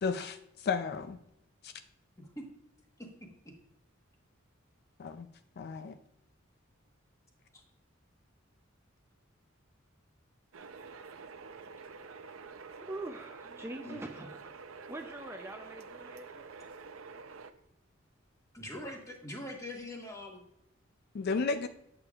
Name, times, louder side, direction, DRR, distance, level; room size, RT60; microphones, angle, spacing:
voice 1, 0.0-1.2 1.6-1.7 5.0-5.3 5.6-6.0 21.1-21.7, left 5 dB, 50° left, 10 dB, 0.4 m, -33 dB
sound 1, 10.5-17.5, right 4 dB, 85° right, 0.5 m, -48 dB
voice 2, 11.1-12.6 12.8-14.6 14.9-16.5 21.5-21.7, right 2 dB, 15° right, 4 dB, 0.4 m, -45 dB
voice 3, 18.5-20.4, left 1 dB, 15° left, 1 dB, 1.2 m, -43 dB
8.4 x 6.8 x 2.4 m, 0.81 s
head